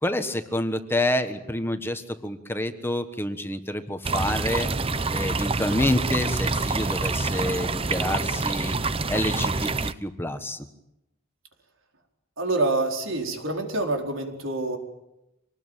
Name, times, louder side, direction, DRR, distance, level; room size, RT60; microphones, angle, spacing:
voice 1, 0.0-4.7 5.1-8.8 9.1-10.7, left 1 dB, 10° left, 8 dB, 1.4 m, -28 dB
sound 1, 4.0-9.9, right 3 dB, 30° right, 0.8 m, -26 dB
voice 2, 12.4-14.8, right 2 dB, 80° right, 3 dB, 4.5 m, -26 dB
26.0 x 19.5 x 9.1 m, 0.87 s
head